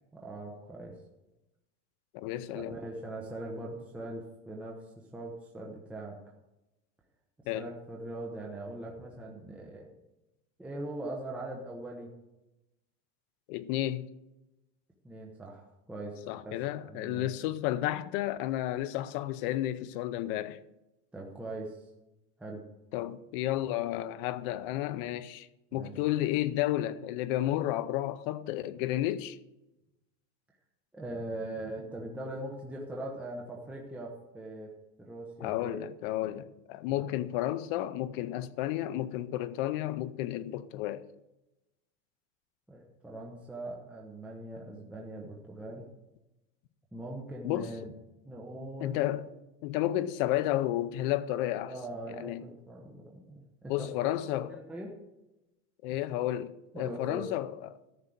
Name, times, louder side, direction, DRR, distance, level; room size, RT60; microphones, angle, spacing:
voice 1, 0.1-1.0 2.5-4.8 5.1-6.1 7.5-9.9 10.6-12.1 15.0-17.3 21.1-21.8 22.4-22.6 25.7-25.9 30.9-34.7 35.0-35.8 36.2-36.4 36.9-37.1 42.7-45.9 46.9-47.9 48.2-49.0 51.6-53.9 54.3-54.9 56.7-57.3, right 1 dB, 5° right, 0.9 m, -41 dB
voice 2, 2.1-2.8 7.5-7.7 13.5-14.1 16.3-20.6 22.9-29.4 35.4-41.1 47.4-47.7 48.8-49.3 49.6-51.7 52.1-52.4 53.7-54.6 55.8-57.8, left 14 dB, 45° left, 0.6 m, -32 dB
13.5 x 5.6 x 7.8 m
supercardioid pair, 170°, 38 cm